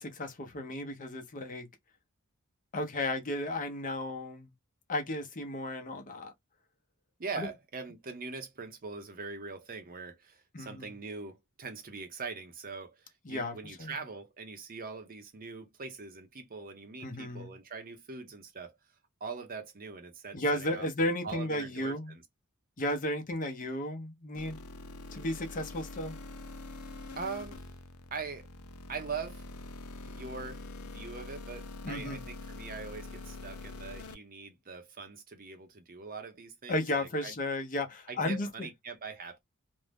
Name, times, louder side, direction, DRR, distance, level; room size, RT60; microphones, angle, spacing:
voice 1, 0.0-1.7 2.7-4.5 4.9-6.3 7.4-7.5 10.5-10.9 13.2-13.9 17.0-17.5 20.3-22.1 22.8-24.6 25.1-26.2 31.8-32.2 36.7-38.7, left 1 dB, 40° left, 0.7 m, -34 dB
voice 2, 7.2-18.7 19.2-20.9 21.2-22.2 27.2-27.6 28.1-28.5 28.9-29.4 30.0-37.3 38.1-39.4, right 4 dB, 40° right, 0.7 m, -42 dB
sound 1, 24.4-34.1, left 3 dB, 80° left, 0.5 m, -45 dB
2.6 x 2.1 x 3.3 m
head